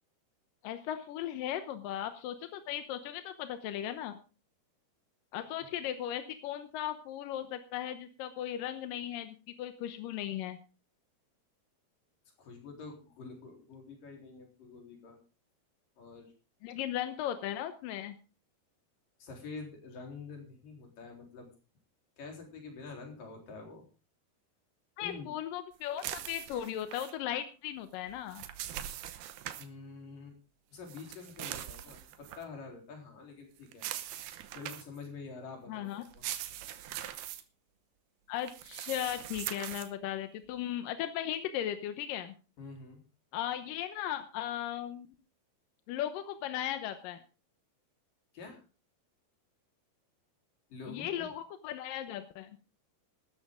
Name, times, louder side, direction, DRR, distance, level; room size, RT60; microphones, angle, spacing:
voice 1, 0.6-4.2 5.3-10.6 16.6-18.2 25.0-28.4 35.7-36.0 38.3-42.3 43.3-45.1 45.9-47.2 50.9-52.6, left 11 dB, 70° left, 9 dB, 2.3 m, -37 dB
voice 2, 12.4-15.2 16.0-16.3 19.2-21.5 22.2-23.9 25.0-25.3 29.6-30.4 30.7-33.9 34.5-36.3 42.6-43.0 48.3-48.6 50.7-51.3, left 4 dB, 55° left, 2 dB, 5.4 m, -47 dB
sound 1, 26.0-27.1 28.1-29.7 30.9-32.4 33.7-35.0 36.0-37.4 38.4-39.9, right 12 dB, 75° right, 2.9 m, -41 dB
16.0 x 13.0 x 3.7 m, 0.34 s
omnidirectional pair, 4.7 m